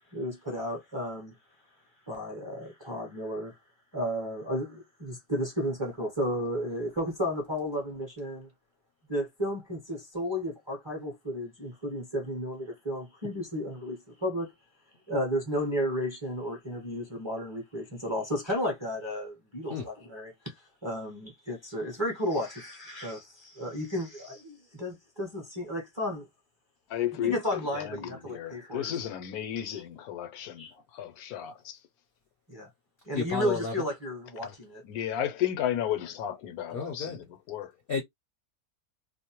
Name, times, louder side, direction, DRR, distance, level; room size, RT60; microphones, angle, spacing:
voice 1, 0.1-1.3 2.1-3.6 3.9-8.5 9.1-14.5 15.1-20.5 20.8-26.3 27.2-28.9 29.6-29.8 30.6-30.7 32.5-32.7 33.1-34.8, equal, 25° right, 0.6 m, -33 dB
voice 2, 26.9-31.8 34.8-37.7, left 10 dB, 80° left, 1.1 m, -33 dB
voice 3, 33.1-33.9 34.4-34.5 36.7-37.2 37.9-38.0, left 5 dB, 55° left, 0.6 m, -32 dB
2.6 x 2.0 x 2.8 m
omnidirectional pair, 1.6 m